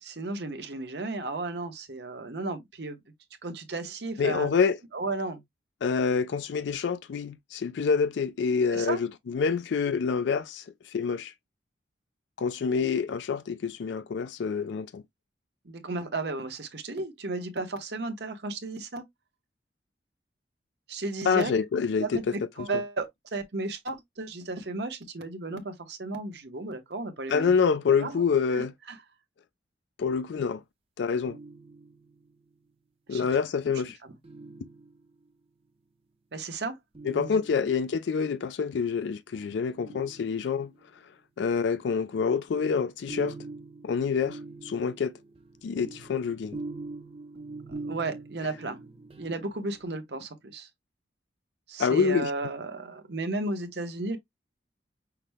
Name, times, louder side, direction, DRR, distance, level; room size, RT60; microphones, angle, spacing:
voice 1, 0.0-3.0 3.4-4.5 4.9-5.4 8.7-9.0 15.6-19.0 20.9-21.5 22.0-27.5 28.0-28.2 28.5-28.6 28.9-29.0 33.1-33.3 36.3-36.8 37.1-37.3 47.7-48.8 49.2-50.7 51.7-54.2, right 2 dB, 60° right, 0.9 m, -34 dB
voice 2, 4.2-4.8 5.8-11.3 12.4-15.0 21.2-22.3 27.3-28.7 30.0-30.6 31.0-31.4 33.1-34.0 37.0-40.7 41.4-43.4 43.8-45.1 45.6-46.6 51.8-52.3, left 5 dB, 70° left, 0.4 m, -27 dB
sound 1, 31.2-32.3 34.2-35.3 36.9-38.0 39.8-40.9 42.5-49.8, right 3 dB, 30° right, 0.6 m, -43 dB
5.8 x 2.0 x 3.4 m
head